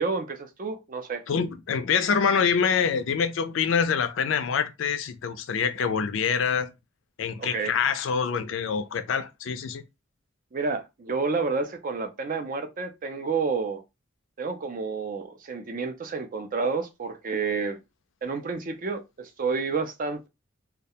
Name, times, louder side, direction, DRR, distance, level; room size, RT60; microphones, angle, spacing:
voice 1, 0.0-1.2 7.4-7.7 10.5-13.8 14.4-17.8 18.2-20.3, right 4 dB, 45° right, 0.5 m, -30 dB
voice 2, 1.3-6.7 7.2-9.8, left 6 dB, 70° left, 0.4 m, -25 dB
2.3 x 2.1 x 2.7 m
head